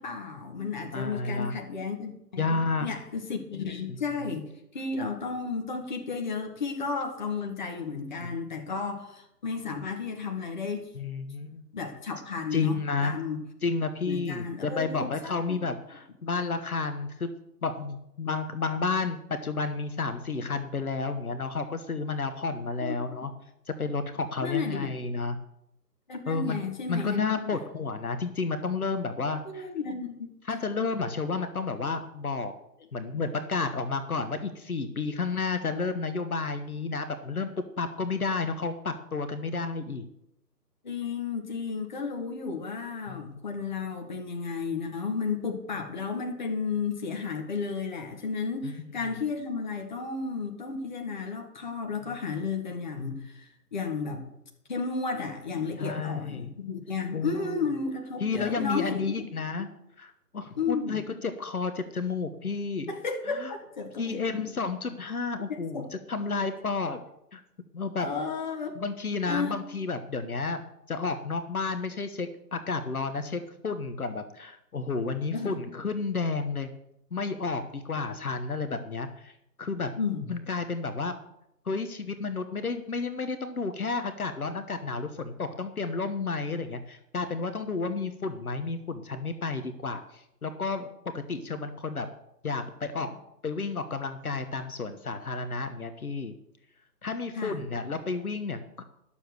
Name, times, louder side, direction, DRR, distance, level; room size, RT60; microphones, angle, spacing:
voice 1, 0.0-4.5 4.7-10.9 11.7-13.4 14.0-15.6 22.8-23.2 24.4-24.9 26.1-27.2 27.5-27.6 29.4-30.3 40.8-54.3 54.7-59.0 60.6-61.0 62.9-64.4 65.5-65.9 68.0-68.7 69.3-69.5 75.3-75.6 80.0-80.3 93.0-93.1 97.3-97.6, left 5 dB, 30° left, 3 dB, 1.4 m, -33 dB
voice 2, 0.9-1.6 2.4-2.9 3.9-4.0 8.2-8.3 10.9-11.6 12.5-13.1 13.6-17.3 17.6-23.3 23.7-25.4 26.3-26.6 26.9-29.7 30.4-32.5 32.9-40.1 43.1-43.4 52.1-52.2 55.8-56.5 57.1-57.7 58.2-59.7 60.0-62.9 63.3-63.5 64.0-67.0 67.3-67.4 67.7-68.1 68.7-76.7 77.1-79.3 79.6-79.9 80.3-81.2 81.6-90.9 91.1-92.1 92.4-93.1 93.4-96.4 97.0-98.8, left 4 dB, 60° left, 9 dB, 1.2 m, -31 dB
11.5 x 7.2 x 6.5 m, 0.81 s
figure-of-eight pair, 155°, 48 cm